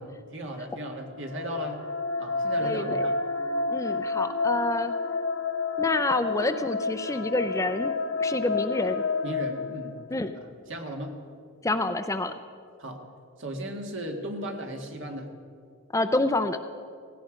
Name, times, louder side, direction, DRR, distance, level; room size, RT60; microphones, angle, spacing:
voice 1, 0.0-1.8 2.2-3.1 9.2-10.0 10.4-11.1 12.8-13.0 13.4-15.3, right 1 dB, 60° right, 3 dB, 1.9 m, -36 dB
sound 1, 1.1-10.3, left 3 dB, 85° left, 1.0 m, -30 dB
voice 2, 2.6-3.1 3.7-4.9 5.8-7.9 8.2-9.0 10.1-10.3 11.6-12.3 15.9-16.6, left 2 dB, 15° left, 9 dB, 0.5 m, -27 dB
17.5 x 16.0 x 5.1 m, 2.3 s
head